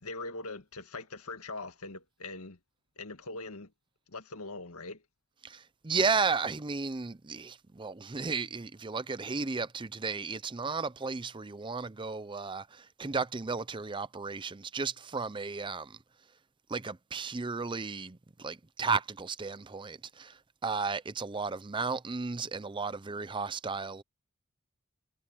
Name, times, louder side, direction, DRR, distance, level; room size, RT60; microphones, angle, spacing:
voice 1, 0.0-2.6 3.0-3.7 4.1-5.0, left 3 dB, 80° left, 1.9 m, -41 dB
voice 2, 5.4-16.0 16.7-24.0, right 4 dB, 20° right, 0.5 m, -34 dB
head